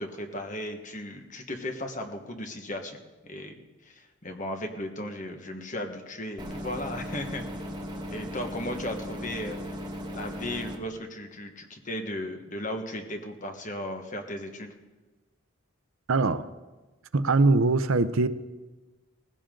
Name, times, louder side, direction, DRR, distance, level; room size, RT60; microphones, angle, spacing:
voice 1, 0.0-3.0 3.2-7.7 8.1-9.6 10.1-14.7, left 1 dB, 35° left, 4 dB, 1.5 m, -36 dB
sound 1, 6.4-10.8, equal, 20° right, 1.4 m, -37 dB
voice 2, 16.1-16.5 17.1-18.3, right 3 dB, 70° right, 13 dB, 0.7 m, -22 dB
19.0 x 16.0 x 3.9 m, 1.2 s
head